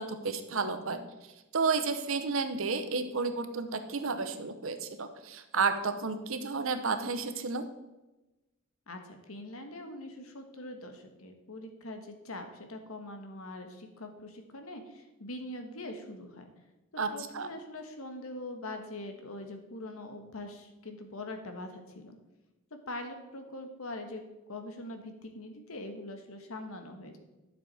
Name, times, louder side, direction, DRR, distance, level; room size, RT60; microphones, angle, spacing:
voice 1, 0.0-7.6 17.0-17.1 17.3-17.5, right 4 dB, 65° right, 9 dB, 0.9 m, -32 dB
voice 2, 8.9-16.5 16.9-22.2 22.7-27.2, left 1 dB, 75° left, 6 dB, 1.3 m, -43 dB
11.5 x 6.9 x 4.2 m, 1.0 s
head